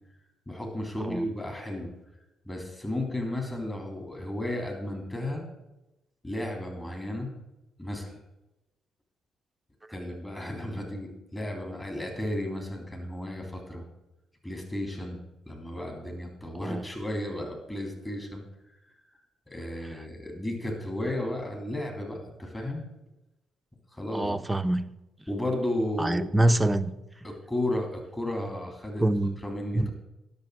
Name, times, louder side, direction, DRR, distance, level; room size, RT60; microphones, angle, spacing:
voice 1, 0.5-1.9 2.4-5.4 6.2-7.3 7.8-8.2 9.9-13.8 14.4-15.2 15.5-18.4 18.9-19.0 19.5-22.9 23.9-24.4 25.3-26.5 27.2-29.0 29.4-29.9, left 1 dB, 15° left, 3.4 m, -33 dB
voice 2, 16.5-16.9 24.1-24.8 26.0-26.9 29.0-29.4 29.7-29.9, right 1 dB, 15° right, 0.7 m, -25 dB
10.5 x 7.0 x 6.5 m
hypercardioid pair, 45°, 0 cm